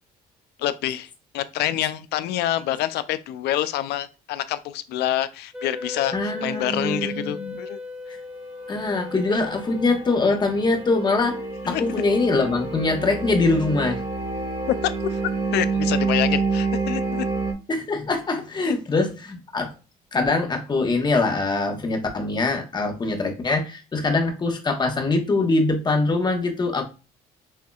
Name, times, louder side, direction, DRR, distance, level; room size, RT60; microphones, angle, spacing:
voice 1, 0.6-7.8 11.7-11.8 14.7-15.2 15.5-17.3 18.7-18.8, left 12 dB, 75° left, 0.5 m, -27 dB
Wind instrument woodwind instrument, 5.5-10.7, left 3 dB, 5° right, 1.2 m, -37 dB
voice 2, 6.1-7.6 8.7-14.0 17.7-19.7 20.1-26.8, left 3 dB, 25° left, 1.1 m, -23 dB
sound 1, 9.0-17.5, right 4 dB, 30° right, 1.6 m, -28 dB
6.4 x 2.7 x 2.4 m
cardioid pair, 110°, 17 cm